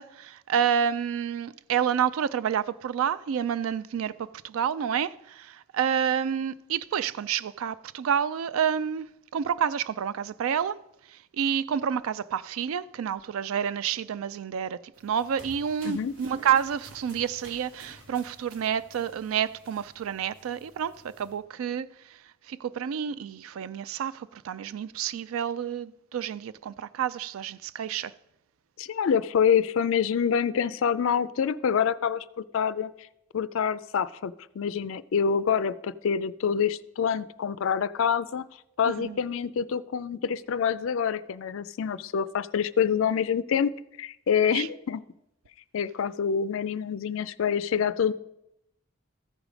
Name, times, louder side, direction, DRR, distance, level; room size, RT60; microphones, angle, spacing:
voice 1, 0.0-10.8 11.1-22.2 22.5-28.1 39.0-39.2 44.5-44.7, right 8 dB, 75° right, 0.3 m, -29 dB
sound 1, 14.9-21.4, equal, 60° right, 2.2 m, -52 dB
voice 2, 28.8-32.9 33.3-38.4 38.8-43.7 44.0-45.0 45.7-48.1, left 7 dB, 70° left, 0.4 m, -26 dB
14.5 x 4.8 x 5.1 m
head